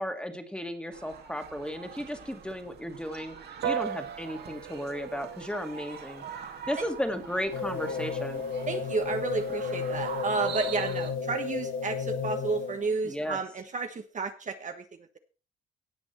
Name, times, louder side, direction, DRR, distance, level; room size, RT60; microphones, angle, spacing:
voice 1, 0.0-3.4 3.6-6.2 6.7-8.4 13.0-13.4, equal, 5° left, 6 dB, 2.0 m, -34 dB
sound 1, 0.9-11.1, right 7 dB, 55° right, 2.2 m, -43 dB
Piano, 3.6-13.4, right 9 dB, 80° right, 0.9 m, -42 dB
sound 2, 7.5-13.0, left 5 dB, 75° left, 1.8 m, -33 dB
voice 2, 8.7-14.8, right 4 dB, 40° right, 6 dB, 1.2 m, -32 dB
17.5 x 6.1 x 4.4 m, 0.35 s
cardioid pair, 90°, 20 cm